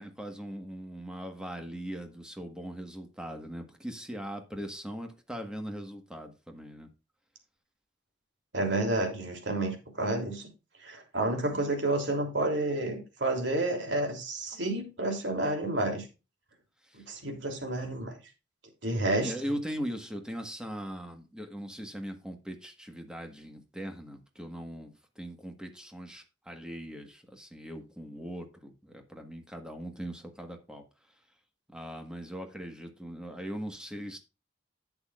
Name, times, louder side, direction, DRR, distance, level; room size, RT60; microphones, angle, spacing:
voice 1, 0.0-6.9 11.5-11.7 16.9-17.0 19.2-30.8 31.7-34.2, equal, 5° right, 1.5 m, -40 dB
voice 2, 8.5-10.5 10.8-16.1 16.9-18.1 18.8-19.3, right 2 dB, 75° right, 3.2 m, -30 dB
11.0 x 8.2 x 2.5 m
head